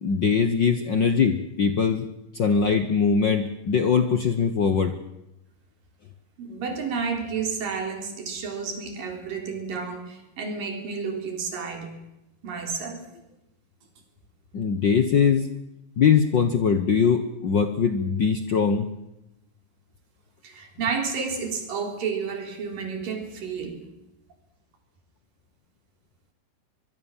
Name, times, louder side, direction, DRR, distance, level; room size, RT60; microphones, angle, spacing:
voice 1, 0.0-2.1 2.3-5.0 14.5-15.5 16.0-18.9, left 6 dB, 65° left, 9 dB, 1.1 m, -21 dB
voice 2, 6.4-12.0 12.4-13.0 20.4-23.8, right 5 dB, 85° right, 5 dB, 5.4 m, -31 dB
25.0 x 21.5 x 7.3 m, 0.88 s
omnidirectional pair, 3.9 m